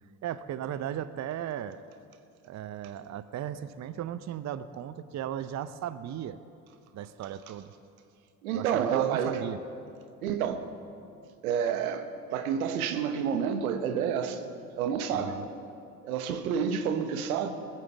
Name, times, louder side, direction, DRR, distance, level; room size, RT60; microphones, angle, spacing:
voice 1, 0.2-1.8 2.4-6.4 6.9-7.7 8.5-9.6 15.1-15.4, right 10 dB, 40° right, 13 dB, 0.6 m, -36 dB
voice 2, 8.4-9.4 10.2-10.7 11.4-14.4 14.8-15.4 16.0-17.5, right 7 dB, 80° right, 8 dB, 1.1 m, -29 dB
20.5 x 7.5 x 7.1 m, 2.5 s
hypercardioid pair, 55°, 42 cm